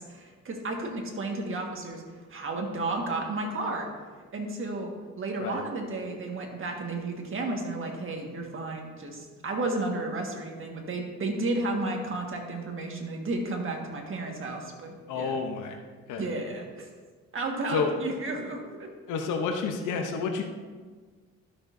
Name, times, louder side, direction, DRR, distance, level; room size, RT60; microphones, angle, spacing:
voice 1, 0.0-2.0 2.3-3.9 4.3-4.9 5.2-15.4 16.2-16.9 17.3-18.9, right 2 dB, 45° right, 1 dB, 1.7 m, -32 dB
voice 2, 15.1-15.8 16.1-16.2 17.7-17.9 19.1-20.4, left 5 dB, 85° left, 4 dB, 0.9 m, -29 dB
12.5 x 6.5 x 2.7 m, 1.5 s
cardioid pair, 90°, 30 cm